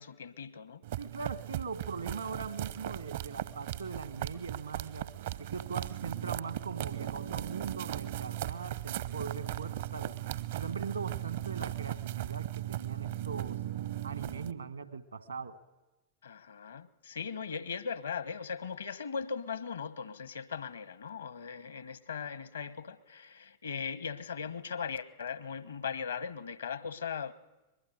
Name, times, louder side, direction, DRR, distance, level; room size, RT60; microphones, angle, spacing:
voice 1, 0.0-0.8 16.2-27.3, left 6 dB, 70° left, 1.2 m, -39 dB
sound 1, 0.8-14.5, right 13 dB, 55° right, 0.8 m, -37 dB
voice 2, 1.0-5.1 5.4-10.2 10.6-13.6 14.0-15.6, right 5 dB, 75° right, 1.5 m, -41 dB
24.0 x 21.5 x 9.5 m
figure-of-eight pair, 90°, 0 cm